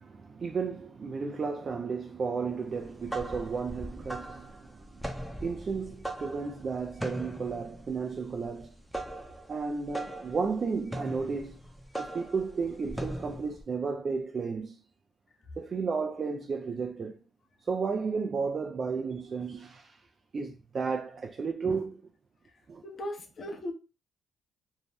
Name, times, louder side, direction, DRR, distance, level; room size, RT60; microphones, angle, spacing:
voice 1, 0.0-5.1 5.4-8.8 9.5-11.6 12.0-14.8 15.6-17.2 17.7-20.0 20.3-22.0 22.7-22.8, right 5 dB, 45° right, 0.3 m, -33 dB
sound 1, 2.8-13.6, right 1 dB, ahead, 0.6 m, -40 dB
voice 2, 22.8-23.7, left 1 dB, 50° left, 0.8 m, -37 dB
2.6 x 2.2 x 3.3 m
cardioid pair, 90°, 0 cm